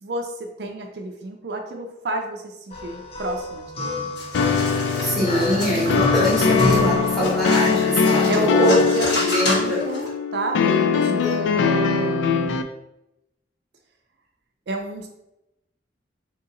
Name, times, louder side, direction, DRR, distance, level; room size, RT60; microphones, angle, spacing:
voice 1, 0.0-2.5 2.8-4.1 5.5-5.9 6.4-7.3 8.3-12.6 14.7-15.1, right 2 dB, 65° right, 3 dB, 0.4 m, -29 dB
sound 1, 2.7-7.9, left 2 dB, 35° left, 0.5 m, -28 dB
sound 2, 4.2-10.1, left 1 dB, 70° left, 1.5 m, -30 dB
sound 3, 4.3-12.6, left 5 dB, 90° left, 0.3 m, -21 dB
voice 2, 5.0-8.7 9.2-9.8 11.0-11.1, equal, ahead, -6 dB, 1.2 m, -24 dB
2.9 x 2.8 x 3.9 m, 0.88 s
head